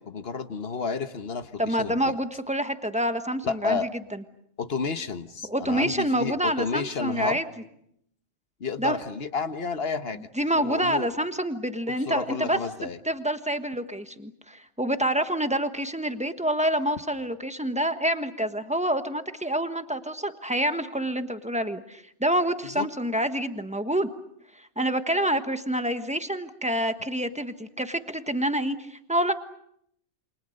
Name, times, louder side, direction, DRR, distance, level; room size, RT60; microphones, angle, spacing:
voice 1, 0.0-2.1 3.4-3.9 4.6-7.4 8.6-10.2 10.6-11.1 12.0-13.0 22.7-22.9, left 5 dB, 50° left, 10 dB, 1.4 m, -31 dB
voice 2, 1.6-4.2 5.4-7.4 8.8-9.0 10.4-12.6 13.0-24.1 24.6-29.3, right 1 dB, 5° right, 9 dB, 1.2 m, -27 dB
28.5 x 25.0 x 6.6 m, 0.73 s
omnidirectional pair, 1.3 m